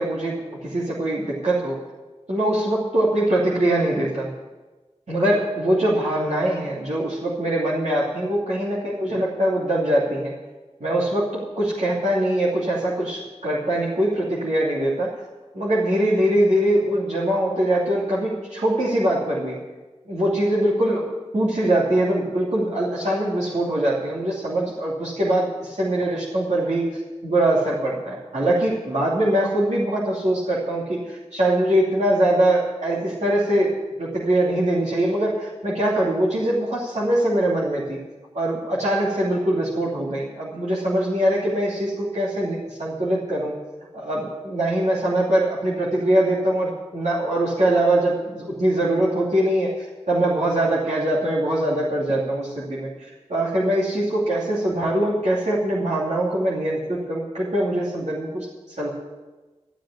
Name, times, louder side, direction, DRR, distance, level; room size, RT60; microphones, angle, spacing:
voice 1, 0.0-1.8 2.3-4.3 5.1-10.3 10.8-15.1 15.5-19.6 20.1-21.0 21.3-33.7 34.0-38.0 38.3-43.5 43.9-58.9, right 1 dB, 75° right, -6 dB, 2.7 m, -22 dB
13.0 x 7.7 x 8.3 m, 1.2 s
cardioid pair, 40°, 12 cm